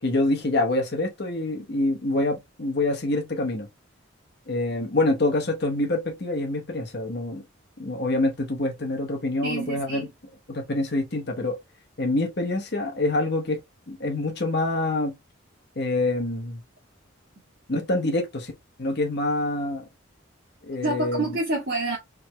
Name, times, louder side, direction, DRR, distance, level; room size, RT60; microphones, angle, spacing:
voice 1, 0.0-3.7 4.5-7.4 7.8-10.1 10.5-11.6 12.0-13.6 13.9-15.1 15.8-16.6 17.7-18.5 18.8-19.9 20.6-21.2, left 2 dB, 55° left, 1.1 m, -26 dB
voice 2, 9.4-10.1 20.8-22.0, right 2 dB, 55° right, 1.9 m, -27 dB
4.6 x 3.7 x 2.2 m
head